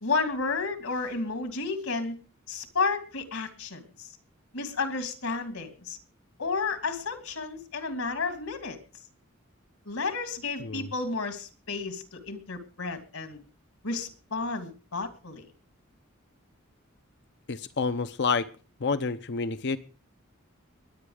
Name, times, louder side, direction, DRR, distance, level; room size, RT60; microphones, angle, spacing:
voice 1, 0.0-2.2 2.5-4.1 4.5-6.0 6.4-8.8 9.8-13.4 13.8-15.5, left 4 dB, 90° left, 9 dB, 2.7 m, -32 dB
voice 2, 17.5-18.5 18.8-19.8, left 4 dB, 55° left, 12 dB, 0.7 m, -28 dB
22.0 x 8.8 x 4.9 m, 0.38 s
head